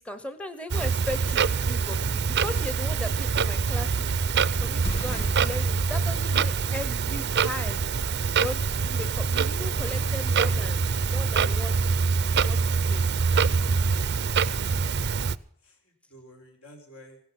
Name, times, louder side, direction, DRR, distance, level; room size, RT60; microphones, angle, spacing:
voice 1, 0.0-4.1 4.6-7.8 8.4-11.7 12.4-12.6 12.9-13.0, left 1 dB, 5° left, 9 dB, 0.9 m, -37 dB
Clock, 0.7-15.4, right 5 dB, 50° right, 0.5 m, -25 dB
Explosion, 4.7-5.9, equal, 25° left, 2.2 m, -34 dB
voice 2, 15.6-17.2, equal, 75° left, 2 dB, 4.8 m, -53 dB
16.5 x 12.0 x 6.0 m, 0.63 s
head